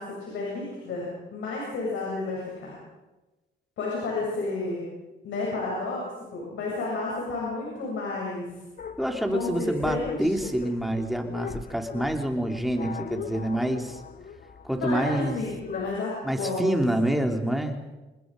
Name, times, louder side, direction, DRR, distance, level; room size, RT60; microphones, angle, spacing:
voice 1, 0.0-2.8 3.8-4.8 5.2-8.5 9.3-10.5 14.8-17.1, left 3 dB, 75° left, -4 dB, 7.8 m, -31 dB
sound 1, 8.8-16.0, left 6 dB, 45° left, 1.4 m, -40 dB
voice 2, 9.0-14.0 14.6-15.4 16.2-17.8, right 1 dB, ahead, 4 dB, 3.2 m, -27 dB
27.5 x 20.5 x 5.3 m, 1.1 s
cardioid pair, 90°, 20 cm